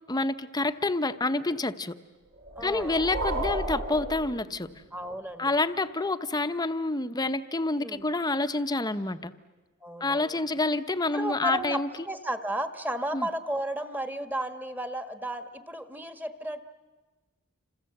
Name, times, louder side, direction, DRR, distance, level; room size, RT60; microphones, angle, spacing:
voice 1, 0.0-2.0 2.6-4.7 5.4-9.3 10.0-11.9 13.1-13.3, left 2 dB, 20° left, 10 dB, 0.9 m, -28 dB
sound 1, 2.4-5.0, right 1 dB, 70° right, 5.3 m, -33 dB
voice 2, 2.6-3.0 4.9-5.5 7.8-8.0 9.8-10.4 11.1-16.6, right 1 dB, 10° right, 8 dB, 1.4 m, -33 dB
29.0 x 26.0 x 7.9 m, 1.2 s
head